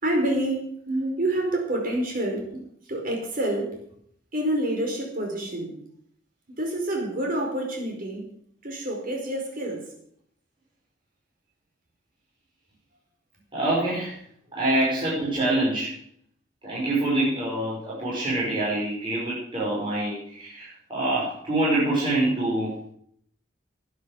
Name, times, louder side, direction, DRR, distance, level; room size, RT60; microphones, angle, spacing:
voice 1, 0.0-0.7 1.2-2.5 2.9-3.8 4.3-5.7 6.6-8.3 8.6-9.8, right 1 dB, 50° right, 1 dB, 4.9 m, -27 dB
voice 2, 13.5-14.2 14.5-15.9 16.6-22.7, right 1 dB, 30° right, -8 dB, 5.8 m, -25 dB
12.0 x 9.6 x 7.9 m, 0.67 s
head